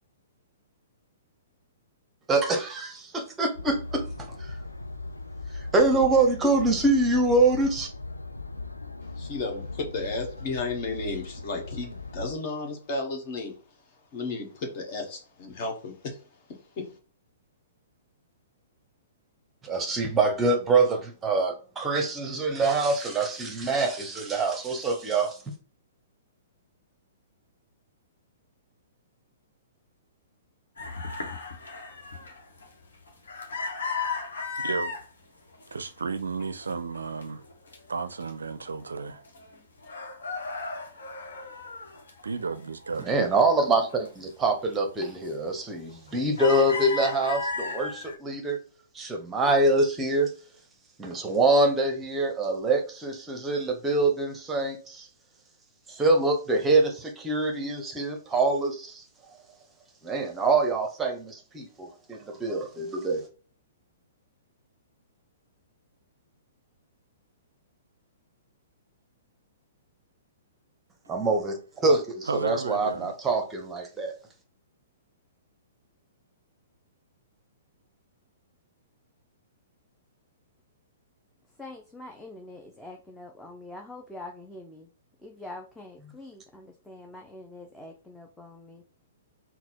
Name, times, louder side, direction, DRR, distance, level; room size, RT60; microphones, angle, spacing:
voice 1, 2.3-4.5 5.5-7.9 19.6-25.4 43.0-48.6 48.9-50.3 51.0-55.1 55.9-59.0 60.0-63.2 71.1-74.1, right 2 dB, 15° right, 0.9 m, -25 dB
sound 1, 3.5-12.3, left 3 dB, 85° left, 0.4 m, -38 dB
voice 2, 9.2-13.5 14.1-16.2 16.8-16.9, left 3 dB, 40° left, 1.4 m, -33 dB
sound 2, 30.8-35.1 35.5-36.1 36.4-37.8 38.2-38.3 38.6-39.6 39.8-42.6 43.0-44.1 44.5-44.7 45.2-45.6 45.9-48.2, left 4 dB, 65° left, 1.0 m, -35 dB
voice 3, 34.6-34.9 35.7-37.4 37.9-39.2 42.2-43.3 72.3-73.1, right 4 dB, 75° right, 0.4 m, -33 dB
voice 4, 81.6-84.9 85.2-88.8, left 2 dB, 5° left, 0.5 m, -44 dB
4.0 x 2.2 x 4.4 m
figure-of-eight pair, 115°, 0 cm